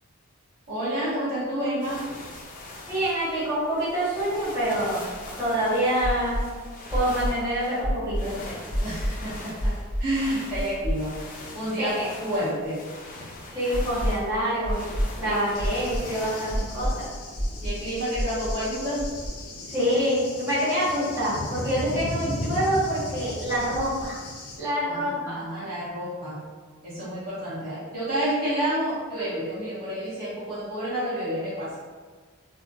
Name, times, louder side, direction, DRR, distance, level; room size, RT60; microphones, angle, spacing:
voice 1, 0.7-2.0 8.8-9.7 10.0-11.1 11.5-12.8 15.2-15.4 17.6-19.0 24.8-26.4 26.8-31.7, equal, 45° right, -11 dB, 1.3 m, -29 dB
sound 1, 1.8-17.1, left 2 dB, 40° left, 0.4 m, -42 dB
sound 2, 2.2-2.3 2.5-2.6 4.2-5.4 6.0-6.5 6.9-7.4 7.8-8.3 8.7-9.1 9.6-10.1 10.5-11.3 11.6-11.7 13.7-14.3 14.6-15.1 15.6-16.1 16.5-17.0 17.4-17.8 18.1-18.6 19.0-19.3, equal, 90° right, 1.4 m, -28 dB
voice 2, 2.9-5.0 5.4-6.4 6.9-8.6 11.8-12.1 13.5-14.8 15.2-17.1 19.7-24.1 24.6-25.3, equal, 15° right, -14 dB, 1.3 m, -26 dB
Cricket / Thunder, 15.5-24.6, left 1 dB, 90° left, 0.6 m, -36 dB
3.4 x 2.5 x 2.4 m, 1.5 s
head